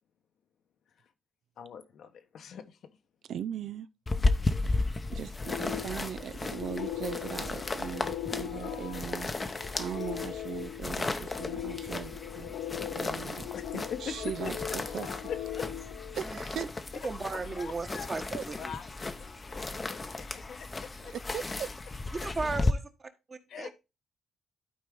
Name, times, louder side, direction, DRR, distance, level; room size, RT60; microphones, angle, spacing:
voice 1, 1.6-3.0 13.5-14.8 15.3-15.9 16.9-18.1 18.6-21.1 23.5-23.7, left 7 dB, 65° left, 1.0 m, -43 dB
voice 2, 3.3-3.9 4.6-12.5 12.9-13.4 13.7-15.1 16.1-16.7 18.3-18.4 21.3-21.7, right 9 dB, 65° right, 0.5 m, -39 dB
sound 1, 4.1-22.7, left 3 dB, 25° left, 0.7 m, -34 dB
sound 2, 5.4-16.7, left 11 dB, 80° left, 0.6 m, -40 dB
voice 3, 17.0-18.8 22.1-23.7, right 3 dB, 35° right, 1.4 m, -36 dB
12.0 x 4.5 x 3.6 m
cardioid pair, 90°, 0 cm